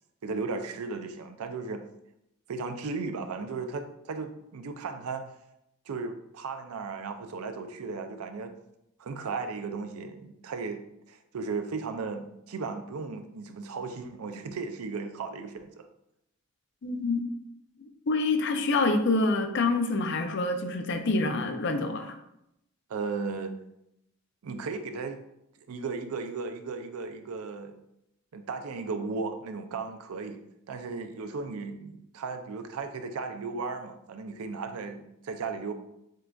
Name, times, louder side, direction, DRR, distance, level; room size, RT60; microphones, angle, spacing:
voice 1, 0.2-1.8 2.5-5.2 5.9-8.5 9.0-10.8 11.1-15.9 22.9-23.5 24.4-25.2 25.7-27.8 28.3-30.4 30.7-35.7, right 4 dB, 85° right, 7 dB, 0.4 m, -35 dB
voice 2, 16.8-17.2 18.1-22.1, left 3 dB, 55° left, 7 dB, 0.5 m, -26 dB
7.5 x 2.5 x 2.3 m, 0.82 s
head